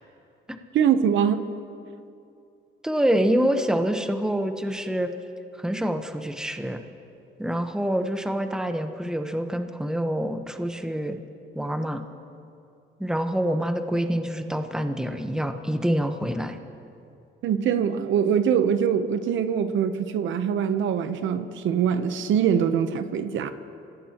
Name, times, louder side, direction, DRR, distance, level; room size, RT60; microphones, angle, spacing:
voice 1, 0.7-1.4 17.4-23.5, right 8 dB, 75° right, 10 dB, 0.9 m, -23 dB
voice 2, 2.8-5.1 5.6-6.8 7.4-11.2 11.5-12.0 13.0-16.6, equal, 5° right, 6 dB, 1.1 m, -26 dB
26.0 x 17.5 x 3.0 m, 2.6 s
cardioid pair, 90°, 20 cm